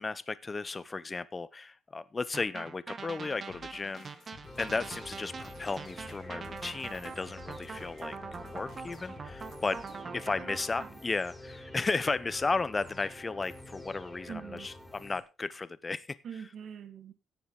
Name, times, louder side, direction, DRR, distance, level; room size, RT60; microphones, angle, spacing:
voice 1, 0.0-9.8 10.1-16.2, left 3 dB, 25° left, 15 dB, 0.9 m, -34 dB
sound 1, 2.3-10.9, right 5 dB, 45° right, 1.5 m, -44 dB
sound 2, 3.5-10.0, left 8 dB, 60° left, 1.9 m, -55 dB
sound 3, 4.4-15.2, left 1 dB, ahead, 3.3 m, -47 dB
voice 2, 10.0-10.5 10.8-10.9 14.3-14.7 16.2-17.1, right 7 dB, 65° right, 10 dB, 2.0 m, -44 dB
17.0 x 6.9 x 3.8 m, 0.28 s
cardioid pair, 90°, 0 cm